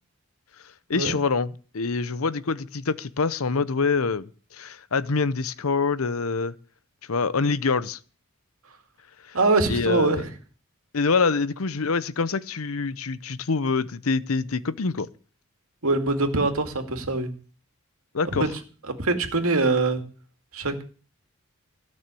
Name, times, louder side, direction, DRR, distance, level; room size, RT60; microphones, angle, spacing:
voice 1, 0.9-6.5 7.1-8.0 9.3-9.4 9.7-10.2 10.9-15.1 18.1-18.5, left 4 dB, 85° left, 0.8 m, -25 dB
voice 2, 9.3-10.3 15.8-17.3 18.3-18.5 19.0-20.0 20.5-20.8, right 3 dB, 85° right, 2.3 m, -23 dB
15.5 x 6.6 x 8.4 m
head